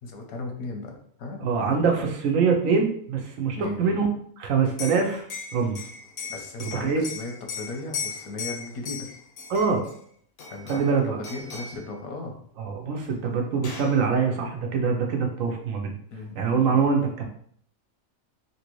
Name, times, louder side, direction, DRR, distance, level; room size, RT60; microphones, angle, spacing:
voice 1, 0.0-1.5 3.5-4.0 6.3-9.1 10.5-12.4 16.1-16.9, left 2 dB, 85° left, 2 dB, 1.2 m, -36 dB
voice 2, 1.4-4.1 4.4-5.3 5.5-5.8 6.6-7.1 9.5-9.9 10.7-11.2 12.6-15.9 16.4-17.3, right 5 dB, 70° right, 3 dB, 1.0 m, -24 dB
Liquid, 4.6-10.0 10.4-10.9 11.2-11.8 13.0-13.1 13.3-14.0, left 5 dB, 60° left, 0.7 m, -37 dB
3.3 x 2.6 x 3.0 m, 0.63 s
omnidirectional pair, 1.4 m